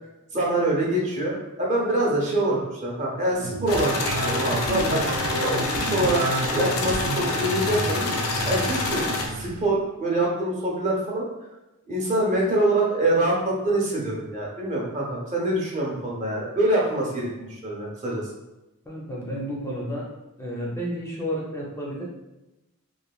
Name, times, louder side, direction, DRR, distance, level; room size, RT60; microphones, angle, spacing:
voice 1, 0.3-5.0 5.4-6.2 6.5-8.0 8.5-11.2 11.9-18.2, right 1 dB, 35° right, -3 dB, 0.6 m, -25 dB
sound 1, 3.3-9.6, right 3 dB, 85° right, 0.4 m, -30 dB
sound 2, 3.7-9.3, left 3 dB, 80° left, 0.4 m, -27 dB
voice 2, 18.8-20.0 20.4-22.1, equal, 10° left, -3 dB, 0.5 m, -31 dB
3.1 x 2.1 x 2.3 m, 0.97 s
head